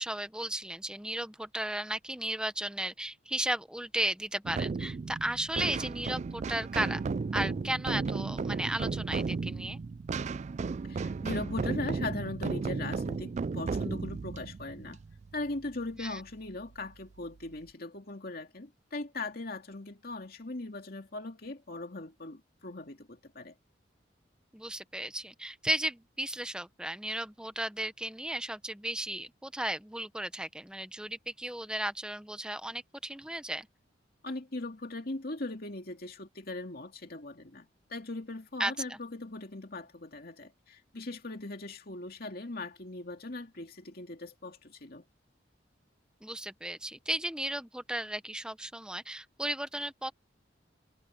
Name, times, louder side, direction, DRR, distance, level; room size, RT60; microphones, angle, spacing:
voice 1, 0.0-7.0 7.3-9.8 16.0-16.2 24.5-33.7 38.6-39.0 46.2-50.1, right 1 dB, 5° right, 0.8 m, -35 dB
sound 1, 4.4-15.9, right 4 dB, 40° right, 0.3 m, -34 dB
voice 2, 10.9-15.0 15.3-23.5 34.2-45.0, left 2 dB, 55° left, 2.4 m, -39 dB
head